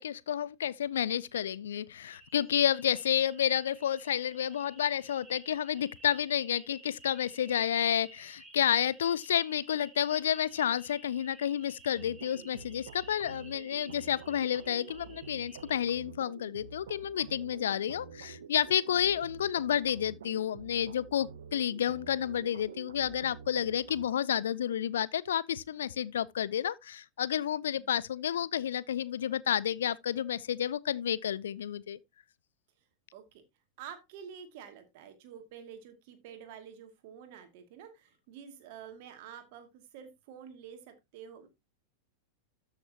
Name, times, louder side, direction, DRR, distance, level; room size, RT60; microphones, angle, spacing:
voice 1, 0.0-32.0, left 10 dB, 65° left, 0.5 m, -30 dB
sound 1, 2.0-15.8, right 2 dB, 15° right, 3.3 m, -55 dB
sound 2, 11.9-24.1, right 6 dB, 65° right, 0.8 m, -48 dB
voice 2, 33.1-33.4 33.8-41.5, right 8 dB, 50° right, 2.4 m, -49 dB
13.5 x 6.6 x 2.9 m
figure-of-eight pair, 90°, 0 cm